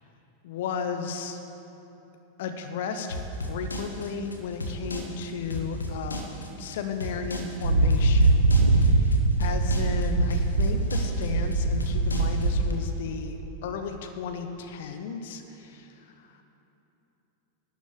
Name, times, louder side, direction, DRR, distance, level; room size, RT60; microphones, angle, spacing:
voice 1, 0.4-1.4 2.4-3.2 3.5-6.3 6.6-8.3 8.7-13.4 13.6-16.3, left 6 dB, 55° left, 6 dB, 0.8 m, -34 dB
sound 1, 3.1-12.7, left 1 dB, 75° left, 1.2 m, -34 dB
sound 2, 7.6-12.7, right 2 dB, 80° right, 0.7 m, -22 dB
12.0 x 6.3 x 8.5 m, 3.0 s
figure-of-eight pair, 90°, 0 cm